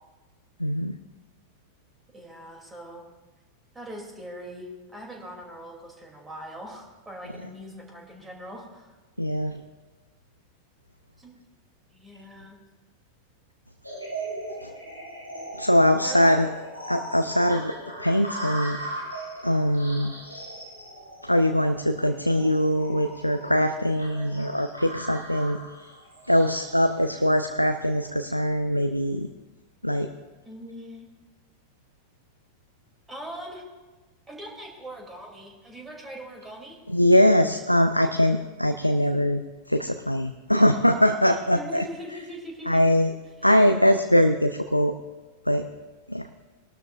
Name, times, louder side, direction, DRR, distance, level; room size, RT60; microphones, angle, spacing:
voice 1, 0.6-0.9 9.2-9.6 14.6-14.7 15.6-16.5 16.9-17.7 18.0-18.8 19.4-20.1 21.2-25.9 26.3-29.3 29.8-30.1 36.9-39.4 39.7-41.8 42.7-43.1 43.4-44.9 45.5-45.6 46.1-46.3, equal, 90° left, 7 dB, 0.5 m, -22 dB
voice 2, 2.1-3.1 3.7-9.0 11.2-11.4 11.9-12.6 16.0-16.4 30.4-31.1 33.1-33.6 34.3-36.8 41.5-42.8 43.4-43.5, equal, 10° right, 1 dB, 2.8 m, -41 dB
sound 1, 13.8-28.1, right 1 dB, 85° right, 3.7 m, -39 dB
20.5 x 12.0 x 2.5 m, 1.2 s
figure-of-eight pair, 90°, 0 cm